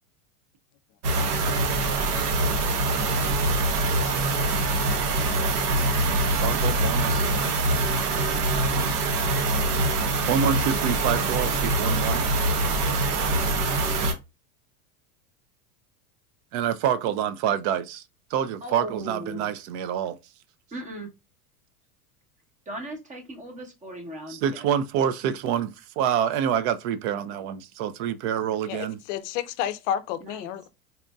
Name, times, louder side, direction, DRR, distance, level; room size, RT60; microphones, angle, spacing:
sound 1, 1.0-14.1, right 2 dB, 90° right, 1.0 m, -24 dB
voice 1, 6.4-7.3 10.3-12.3 16.5-18.0 18.3-20.2 24.3-29.0, right 9 dB, 50° right, 0.5 m, -27 dB
voice 2, 18.6-19.5 20.7-21.1 22.7-24.7 30.2-30.5, right 1 dB, 15° right, 0.9 m, -38 dB
voice 3, 28.7-30.7, left 10 dB, 55° left, 0.5 m, -31 dB
4.2 x 2.5 x 2.2 m
supercardioid pair, 125°, 45 cm